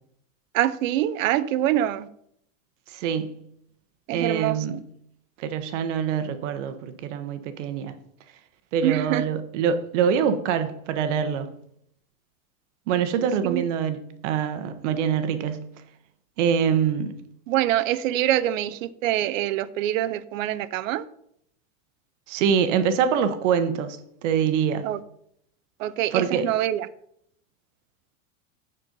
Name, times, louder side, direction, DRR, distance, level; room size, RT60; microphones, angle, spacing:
voice 1, 0.5-2.1 4.1-4.8 8.8-9.2 13.4-13.6 17.5-21.0 24.8-25.0 25.8-26.9, right 13 dB, 80° right, 0.7 m, -25 dB
voice 2, 2.9-3.4 4.1-4.8 5.4-7.9 8.7-11.5 12.9-15.8 16.4-17.2 22.3-24.9 26.1-26.5, right 7 dB, 65° right, 1.1 m, -25 dB
9.9 x 4.5 x 5.4 m
supercardioid pair, 155°, 39 cm